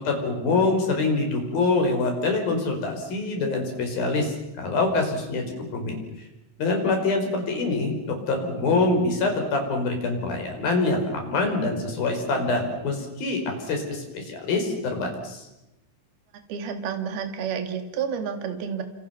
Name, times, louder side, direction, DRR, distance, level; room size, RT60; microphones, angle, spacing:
voice 1, 0.0-6.0 6.6-15.5, left 3 dB, 45° left, 4 dB, 6.6 m, -25 dB
voice 2, 16.5-18.8, right 7 dB, 55° right, 6 dB, 3.9 m, -30 dB
29.0 x 28.0 x 6.0 m, 0.93 s
omnidirectional pair, 5.8 m